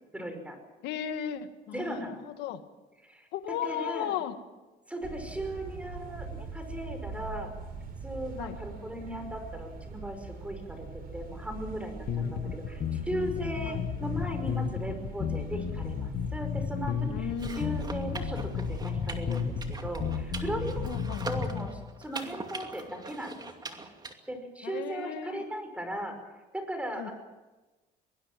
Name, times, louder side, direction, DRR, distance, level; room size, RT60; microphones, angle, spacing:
voice 1, 0.1-0.6 1.7-2.2 3.0-4.1 4.9-7.5 8.0-10.9 11.1-20.9 21.3-23.8 24.3-26.2 26.5-27.1, right 1 dB, 5° right, 6 dB, 5.4 m, -37 dB
voice 2, 0.8-2.6 3.3-4.3 8.4-8.6 12.2-12.6 13.6-13.8 17.1-17.7 20.8-21.4 24.6-25.4 27.0-27.1, left 10 dB, 90° left, 9 dB, 1.7 m, -36 dB
sound 1, 5.0-21.0, right 4 dB, 60° right, 6.0 m, -42 dB
sound 2, 12.1-21.7, left 8 dB, 60° left, 1.8 m, -33 dB
sound 3, 17.3-24.1, right 3 dB, 25° right, 2.5 m, -42 dB
23.5 x 20.0 x 7.5 m, 1.1 s
cardioid pair, 110°, 17 cm